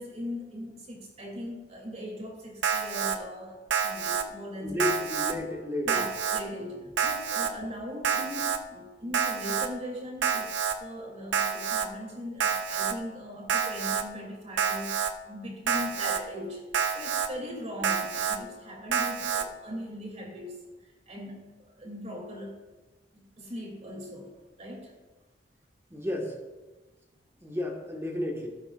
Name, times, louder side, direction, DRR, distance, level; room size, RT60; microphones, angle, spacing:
voice 1, 0.0-5.1 5.8-10.5 10.8-16.6 16.9-21.5 21.7-22.6 23.4-24.3 24.6-24.9, equal, 40° right, -1 dB, 2.9 m, -39 dB
Alarm, 2.6-3.2 3.7-4.2 4.8-5.3 5.9-6.4 7.0-7.5 8.0-8.6 9.1-9.7 10.2-10.8 11.3-11.9 12.4-12.9 13.5-14.0 14.6-15.1 15.7-16.2 16.7-17.3 17.8-18.4 18.9-19.4, right 7 dB, 70° right, 0.7 m, -28 dB
voice 2, 4.6-6.0 25.9-26.4 27.4-28.5, left 1 dB, 15° right, 0 dB, 1.7 m, -32 dB
16.5 x 8.7 x 2.5 m, 1.2 s
head